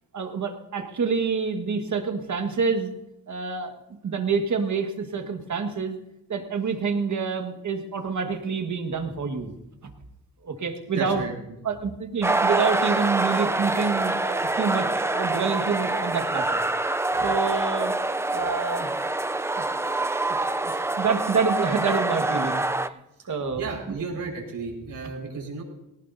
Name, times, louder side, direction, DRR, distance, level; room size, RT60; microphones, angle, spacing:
voice 1, 0.1-2.9 3.3-3.7 4.0-6.0 6.3-9.5 10.4-11.2 11.6-16.6 17.1-17.9 18.3-18.9 19.5-19.6 20.3-20.7 21.0-22.6 22.9-23.0 23.3-23.7, right 5 dB, 55° right, 5 dB, 1.6 m, -27 dB
voice 2, 10.9-11.3 23.5-25.6, right 4 dB, 75° right, -1 dB, 5.0 m, -33 dB
sound 1, 12.2-22.9, right 2 dB, 10° right, 0.4 m, -25 dB
19.0 x 18.0 x 2.7 m, 0.88 s
cardioid pair, 105°, 34 cm